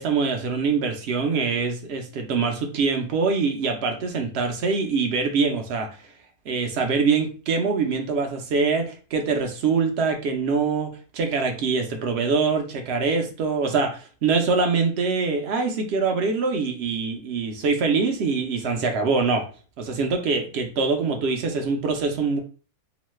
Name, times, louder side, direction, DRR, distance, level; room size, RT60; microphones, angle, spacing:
voice 1, 0.0-5.9 6.5-19.4 19.8-22.4, right 4 dB, 60° right, 3 dB, 0.7 m, -24 dB
3.0 x 2.1 x 3.0 m, 0.37 s
omnidirectional pair, 1.6 m